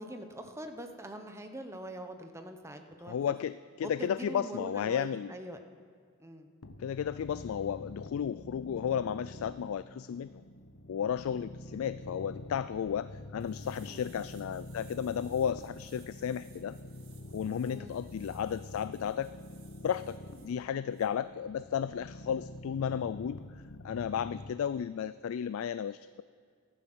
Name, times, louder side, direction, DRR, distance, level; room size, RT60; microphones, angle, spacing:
voice 1, 0.0-3.3 3.8-5.6 6.2-6.5 13.9-14.2 17.5-18.0, right 1 dB, 15° right, 6 dB, 0.9 m, -43 dB
voice 2, 3.1-5.3 6.8-10.4 10.9-16.8 17.3-19.3 19.8-20.2 20.4-23.4 23.8-26.2, left 8 dB, 70° left, 15 dB, 0.3 m, -33 dB
sound 1, 6.6-24.5, left 1 dB, 90° left, 0.9 m, -47 dB
sound 2, 13.4-20.5 20.9-21.1, right 8 dB, 75° right, 1.8 m, -62 dB
14.5 x 11.5 x 6.1 m, 2.1 s
head